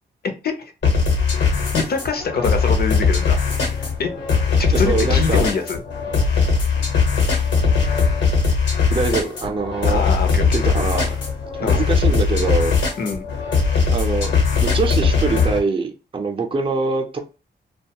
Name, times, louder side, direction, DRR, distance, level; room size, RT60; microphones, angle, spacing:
sound 1, 0.8-15.6, left 5 dB, 80° left, 1.1 m, -19 dB
voice 1, 1.7-3.4 3.7-4.1 4.6-5.8 9.8-10.4 11.6-11.8 13.0-13.3, left 5 dB, 60° left, 5 dB, 0.7 m, -24 dB
voice 2, 4.7-5.4 8.9-10.0 10.5-11.2 11.6-12.8 13.9-14.3 14.6-17.2, right 4 dB, 30° right, 2 dB, 0.5 m, -23 dB
2.5 x 2.2 x 2.8 m, 0.32 s
wide cardioid pair, 100°, 18 cm